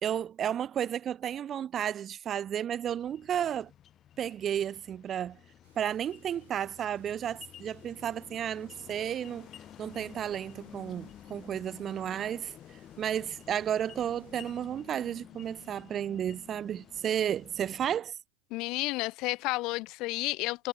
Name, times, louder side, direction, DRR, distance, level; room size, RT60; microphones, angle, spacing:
voice 1, 0.0-3.7 4.2-5.4 5.8-9.5 9.8-12.5 13.0-18.2, right 9 dB, 25° right, 0.3 m, -32 dB
sound 1, 2.8-18.0, left 10 dB, 30° left, 1.3 m, -52 dB
sound 2, 5.6-14.7, right 12 dB, 85° right, 6.5 m, -68 dB
voice 2, 18.5-20.7, left 22 dB, 45° left, 0.4 m, -31 dB
supercardioid pair, 140°, 0 cm